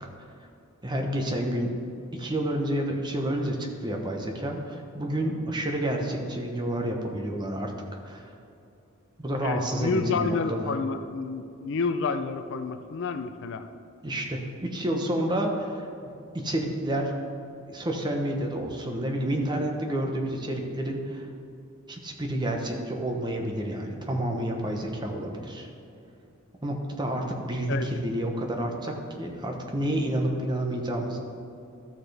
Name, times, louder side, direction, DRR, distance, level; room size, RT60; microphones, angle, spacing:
voice 1, 0.8-1.7 2.1-3.6 3.8-7.7 8.0-8.2 9.2-10.7 14.0-17.2 17.7-21.3 21.9-25.7 26.6-31.2, right 1 dB, 20° right, 2 dB, 0.9 m, -29 dB
voice 2, 9.4-13.7 27.7-27.9, left 4 dB, 60° left, 8 dB, 0.4 m, -29 dB
13.0 x 6.4 x 3.4 m, 2.6 s
head